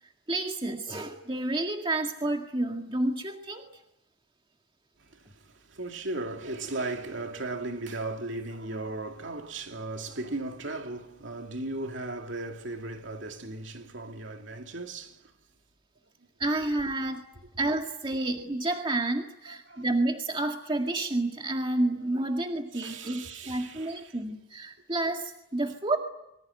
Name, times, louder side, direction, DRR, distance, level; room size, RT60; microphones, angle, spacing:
voice 1, 0.3-3.7 16.4-17.2 17.6-26.0, right 2 dB, 25° right, 2.0 m, -30 dB
voice 2, 5.7-15.2 19.5-19.8 22.7-24.2, right 2 dB, 70° right, 2.5 m, -36 dB
26.5 x 24.0 x 9.2 m
head